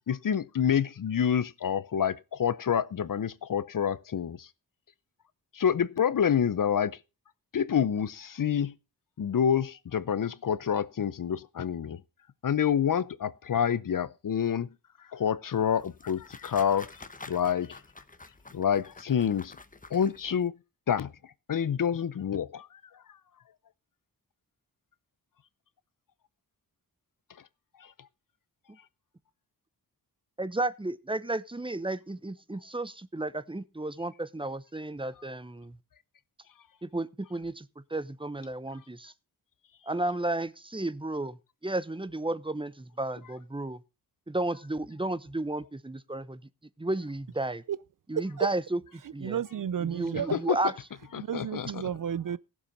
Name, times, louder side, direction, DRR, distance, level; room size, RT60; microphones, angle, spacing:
voice 1, 0.1-4.5 5.5-7.0 7.5-8.7 9.2-12.0 12.4-14.7 15.1-16.9 17.3-17.8 18.5-19.6 19.9-20.5 20.9-21.1 21.5-22.7 50.3-50.6 51.1-51.8, left 8 dB, 55° left, 0.7 m, -27 dB
sound 1, 15.5-20.5, left 3 dB, 20° left, 1.0 m, -49 dB
voice 2, 30.4-35.8 36.8-39.1 39.9-41.4 41.6-43.8 44.3-46.4 46.8-47.6 48.1-48.8 49.1-49.4 49.8-50.7, right 2 dB, 15° right, 0.8 m, -33 dB
voice 3, 48.1-48.5 49.2-50.3 51.2-52.4, right 9 dB, 55° right, 0.5 m, -31 dB
15.5 x 7.3 x 5.3 m
cardioid pair, 70°, 39 cm